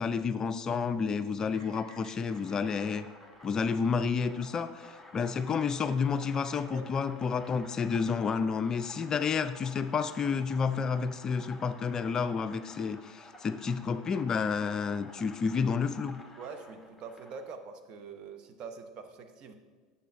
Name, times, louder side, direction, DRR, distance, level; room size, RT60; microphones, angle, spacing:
voice 1, 0.0-3.1 3.4-16.2, left 5 dB, 30° left, 11 dB, 0.4 m, -30 dB
Bird vocalization bird call bird song, 1.5-5.8, right 1 dB, 80° right, 2.5 m, -59 dB
sound 1, 2.3-17.5, left 2 dB, ahead, 1.3 m, -52 dB
voice 2, 16.4-19.5, right 5 dB, 45° right, 7 dB, 0.9 m, -44 dB
9.2 x 7.0 x 3.5 m, 1.4 s
figure-of-eight pair, 75°, 2 cm